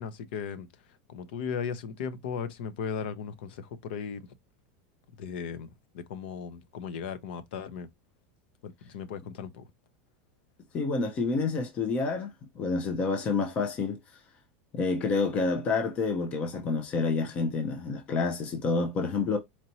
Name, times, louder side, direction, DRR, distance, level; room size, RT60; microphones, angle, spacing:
voice 1, 0.0-4.3 5.2-5.7 5.9-7.9 8.6-9.7, left 6 dB, 65° left, 0.7 m, -37 dB
voice 2, 10.7-12.3 12.6-14.0 14.7-19.4, left 4 dB, 20° left, 0.6 m, -28 dB
4.4 x 2.6 x 2.9 m
supercardioid pair, 175°, 6 cm